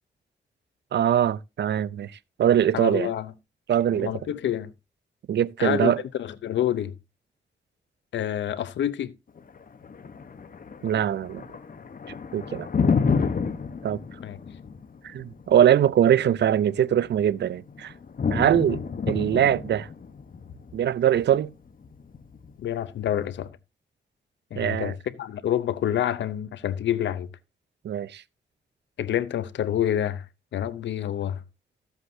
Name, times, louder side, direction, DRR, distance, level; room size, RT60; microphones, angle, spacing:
voice 1, 0.9-2.1 2.4-3.1 3.7-4.1 5.3-6.0 10.8-11.4 12.3-12.7 13.8-14.0 15.0-17.9 18.3-18.8 19.1-19.9 20.7-21.5 24.6-24.9 27.8-28.2, right 10 dB, 70° right, 0.5 m, -22 dB
voice 2, 2.7-3.3 4.0-4.7 5.6-5.9 6.2-6.9 8.1-9.1 14.2-14.4 22.6-23.5 24.5-27.3 29.0-30.2 30.5-31.4, left 10 dB, 90° left, 0.7 m, -27 dB
Thunder, 9.4-23.4, left 5 dB, 50° left, 1.1 m, -31 dB
14.0 x 8.1 x 2.7 m
cardioid pair, 70°, 18 cm